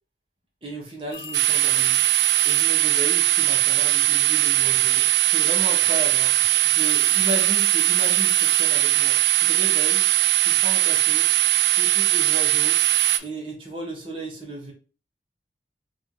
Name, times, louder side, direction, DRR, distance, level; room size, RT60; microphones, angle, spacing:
voice 1, 0.6-2.0 2.4-10.0 10.4-11.3 11.7-12.8 13.2-14.7, right 1 dB, 30° right, -2 dB, 1.2 m, -34 dB
sound 1, 1.1-2.8 6.8-9.1 12.8-13.2, left 4 dB, 55° left, 0.8 m, -38 dB
sound 2, 1.3-13.2, right 14 dB, 80° right, 0.4 m, -20 dB
3.4 x 2.9 x 3.8 m, 0.35 s
head